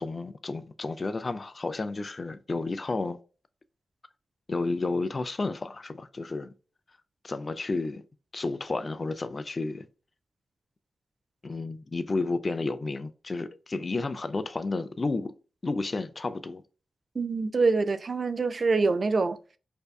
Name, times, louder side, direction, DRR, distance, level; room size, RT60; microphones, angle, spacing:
voice 1, 0.0-3.2 4.5-6.5 7.2-8.0 8.3-9.9 11.4-15.3 15.6-16.6, left 3 dB, 45° left, 0.4 m, -31 dB
voice 2, 17.2-19.4, right 4 dB, 55° right, 0.3 m, -25 dB
2.6 x 2.2 x 2.2 m
supercardioid pair, 40°, 0 cm